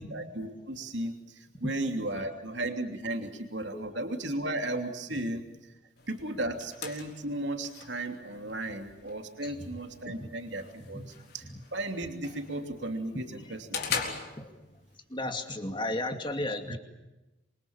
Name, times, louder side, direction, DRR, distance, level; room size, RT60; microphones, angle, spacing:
voice 1, 0.0-5.4 6.1-11.0 11.3-11.4 11.7-13.8, right 1 dB, 70° right, 5 dB, 3.0 m, -35 dB
voice 2, 2.0-2.4 3.7-3.9 5.1-5.2 9.4-9.7 10.2-10.4 10.8-11.2 11.5-11.6 13.4-13.6 13.9-14.5 15.1-16.8, left 1 dB, 25° left, 6 dB, 2.5 m, -36 dB
sound 1, 6.0-15.0, left 6 dB, 55° left, 4.0 m, -42 dB
27.0 x 24.5 x 7.3 m, 1.0 s
head